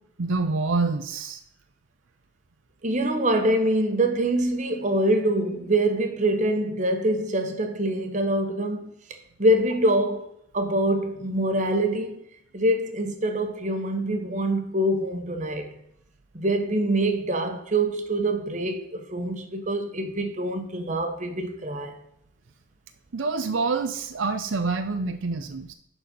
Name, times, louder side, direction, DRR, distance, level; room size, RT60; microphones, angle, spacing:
voice 1, 0.2-1.4 23.1-25.7, right 3 dB, 80° right, 0.6 m, -26 dB
voice 2, 2.8-8.9 9.4-10.3 10.5-12.2 12.5-15.7 16.3-21.9, right 1 dB, 40° right, 1.2 m, -25 dB
11.0 x 4.4 x 5.3 m
head